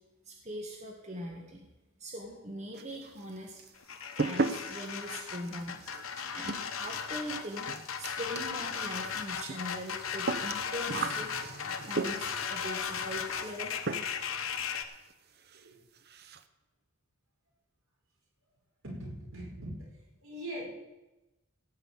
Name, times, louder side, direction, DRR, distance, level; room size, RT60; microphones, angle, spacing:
voice 1, 0.2-1.6 2.0-3.6 4.1-5.8 6.3-7.7 8.0-11.3 11.8-13.8, equal, 35° right, 0 dB, 1.7 m, -41 dB
sound 1, 2.7-3.3 3.6-12.5 13.4-13.6 13.9-14.3 14.6-14.7 15.1-15.2 15.5-15.6 16.0-16.4, right 3 dB, 50° right, 0.8 m, -37 dB
concrete-mixer mason whistling, 3.8-14.8, left 7 dB, 80° left, 1.1 m, -36 dB
voice 2, 18.8-19.9 20.2-20.6, right 1 dB, 80° right, -3 dB, 5.2 m, -41 dB
17.0 x 5.7 x 8.1 m, 1.0 s
head